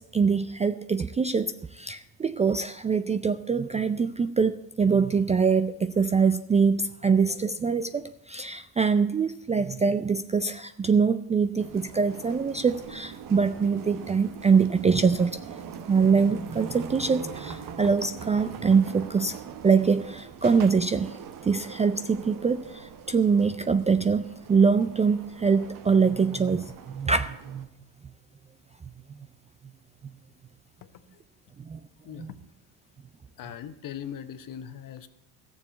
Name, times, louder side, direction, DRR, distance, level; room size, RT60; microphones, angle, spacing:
voice 1, 0.1-15.4 15.9-19.4 19.6-21.2 21.4-27.7 31.6-31.8 32.2-32.3, right 5 dB, 15° right, 12 dB, 0.4 m, -24 dB
sound 1, 11.6-27.6, right 7 dB, 50° right, 1.3 m, -42 dB
voice 2, 30.8-31.2 32.0-32.5 33.4-35.1, left 9 dB, 50° left, 11 dB, 1.2 m, -40 dB
14.0 x 7.2 x 8.1 m, 0.85 s
supercardioid pair, 100°, 43 cm